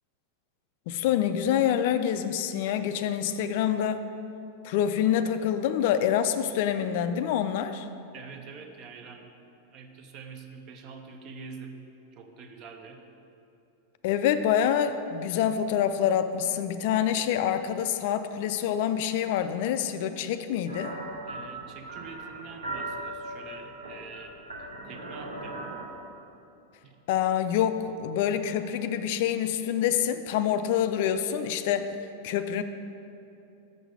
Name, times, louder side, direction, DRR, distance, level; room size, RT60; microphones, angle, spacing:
voice 1, 0.9-4.0 4.6-7.9 14.0-21.0 27.1-31.9 32.2-32.6, left 9 dB, 50° left, 10 dB, 0.3 m, -26 dB
voice 2, 8.1-9.3 9.7-11.8 12.1-13.0 21.3-25.8 26.8-27.0, right 5 dB, 35° right, 5 dB, 0.7 m, -45 dB
sound 1, 20.7-25.8, right 2 dB, 75° right, 0.9 m, -39 dB
6.6 x 6.2 x 4.9 m, 2.8 s
figure-of-eight pair, 90°, 0 cm